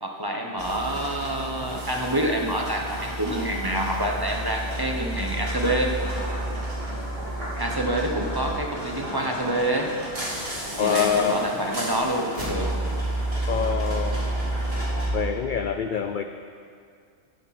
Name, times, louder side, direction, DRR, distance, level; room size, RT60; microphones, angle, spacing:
voice 1, 0.0-5.9 7.6-9.9 10.8-12.7, right 1 dB, 20° right, 1 dB, 0.9 m, -27 dB
sound 1, 0.6-15.1, right 1 dB, 45° right, 3.7 m, -30 dB
voice 2, 10.8-11.5 13.5-14.3 15.1-16.2, left 7 dB, 70° left, 7 dB, 0.5 m, -25 dB
14.0 x 9.9 x 4.2 m, 2.2 s
omnidirectional pair, 1.4 m